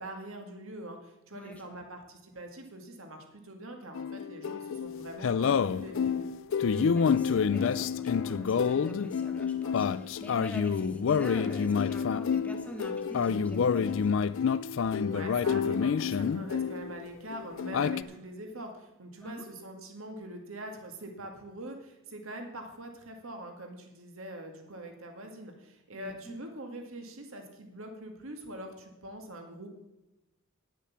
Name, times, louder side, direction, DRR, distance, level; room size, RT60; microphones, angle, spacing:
voice 1, 0.0-6.3 15.1-29.7, right 1 dB, 65° right, 4 dB, 2.0 m, -43 dB
voice 2, 1.3-1.8 6.6-14.2 19.2-19.4 25.9-26.4, left 1 dB, 5° left, 2 dB, 1.5 m, -44 dB
sound 1, 3.9-17.1 17.3-18.0, left 6 dB, 60° left, 0.4 m, -28 dB
10.0 x 8.3 x 7.2 m, 0.97 s
head